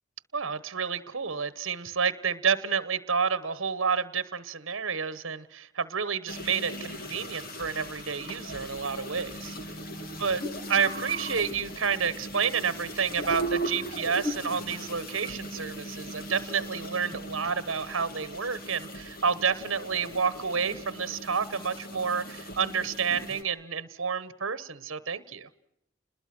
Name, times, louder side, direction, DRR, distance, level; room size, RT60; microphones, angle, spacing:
voice 1, 0.3-9.5 10.2-10.4 10.7-25.5, right 6 dB, 75° right, 16 dB, 1.1 m, -29 dB
sound 1, 6.3-23.4, right 1 dB, 45° left, 2.0 m, -38 dB
30.0 x 21.0 x 6.0 m, 0.80 s
head